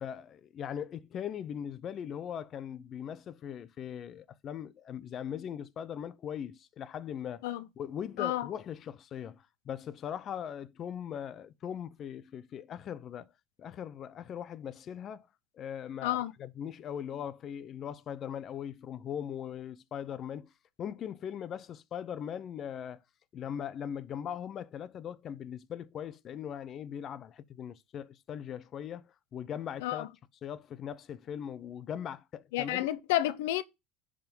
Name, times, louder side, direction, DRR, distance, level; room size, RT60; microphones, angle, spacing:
voice 1, 0.0-7.5 7.8-13.3 13.6-15.3 15.5-20.5 20.8-23.0 23.3-30.1 30.4-32.9, left 9 dB, 40° left, 0.7 m, -40 dB
voice 2, 8.2-8.5 16.0-16.3 29.8-30.1 32.5-33.6, left 14 dB, 90° left, 0.7 m, -30 dB
10.5 x 3.8 x 5.4 m
supercardioid pair, 130°, 0 cm